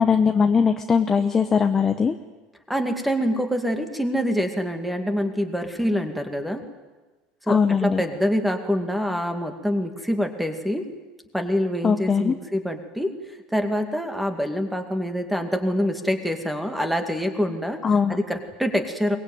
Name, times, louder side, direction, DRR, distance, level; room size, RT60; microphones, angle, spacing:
voice 1, 0.0-2.1 7.5-8.0 11.8-12.4 17.8-18.2, left 6 dB, 15° left, 7 dB, 0.8 m, -20 dB
voice 2, 2.7-6.6 7.4-10.8 11.3-13.1 13.5-17.8 18.1-19.2, equal, ahead, 6 dB, 2.1 m, -25 dB
23.0 x 21.5 x 9.4 m, 1.2 s
cardioid pair, 170°, 2 cm